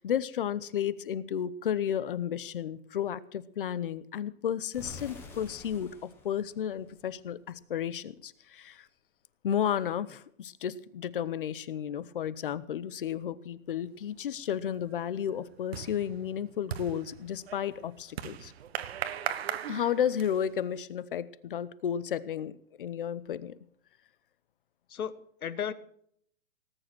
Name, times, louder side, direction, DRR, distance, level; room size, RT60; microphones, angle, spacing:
voice 1, 0.0-8.9 9.4-18.5 19.7-23.6, left 9 dB, 40° left, 18 dB, 0.8 m, -33 dB
sound 1, 4.7-7.6, left 3 dB, 5° left, 0.9 m, -49 dB
sound 2, 14.1-14.5 14.8-20.6, right 9 dB, 45° right, 1.1 m, -39 dB
voice 2, 24.9-25.7, left 8 dB, 80° left, 15 dB, 1.4 m, -35 dB
18.5 x 9.5 x 6.0 m, 0.65 s
hypercardioid pair, 170°, 43 cm